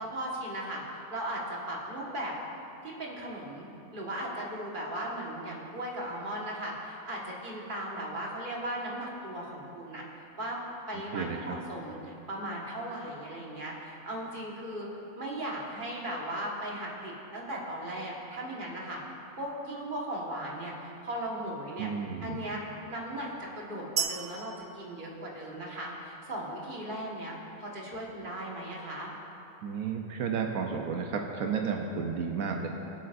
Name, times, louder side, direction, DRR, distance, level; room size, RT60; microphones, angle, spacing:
voice 1, 0.0-2.3 2.8-10.6 10.9-14.9 15.1-19.0 19.4-21.9 22.2-22.6 22.9-29.1, right 1 dB, 40° right, -3 dB, 1.7 m, -37 dB
voice 2, 21.8-22.5 29.6-32.7, right 6 dB, 80° right, 2 dB, 1.2 m, -32 dB
sound 1, 24.0-25.9, right 7 dB, 60° right, 0.6 m, -35 dB
21.0 x 8.1 x 2.6 m, 2.9 s
omnidirectional pair, 1.4 m